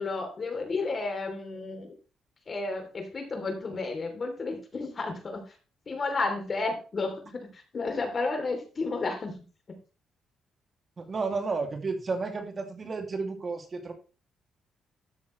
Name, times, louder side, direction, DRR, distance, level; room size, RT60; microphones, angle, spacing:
voice 1, 0.0-1.9 2.5-5.5 5.9-9.4 9.7-9.8, left 3 dB, 40° left, 5 dB, 3.1 m, -32 dB
voice 2, 11.0-13.9, right 4 dB, 40° right, 4 dB, 2.4 m, -32 dB
13.0 x 7.3 x 3.2 m, 0.34 s
cardioid pair, 90°, 0 cm